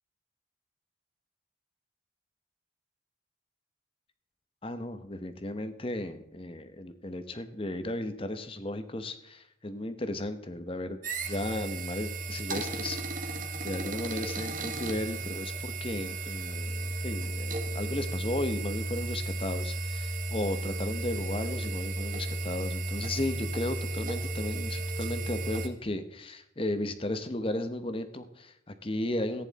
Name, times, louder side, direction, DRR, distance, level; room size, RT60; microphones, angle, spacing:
voice 1, 4.6-11.0 11.2-29.5, left 1 dB, 25° left, 9 dB, 0.9 m, -35 dB
sound 1, 11.0-25.7, right 2 dB, 40° right, 1.5 m, -34 dB
14.5 x 9.8 x 4.1 m, 0.81 s
head